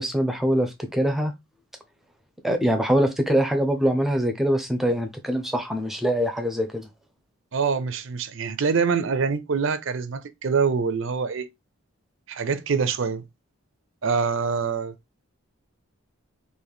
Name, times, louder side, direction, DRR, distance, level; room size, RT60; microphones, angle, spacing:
voice 1, 0.0-1.3 2.4-6.8, equal, ahead, 0.5 m, -23 dB
voice 2, 7.5-11.5 12.3-13.2 14.0-14.9, right 5 dB, 60° right, 0.5 m, -25 dB
3.9 x 2.5 x 3.3 m
head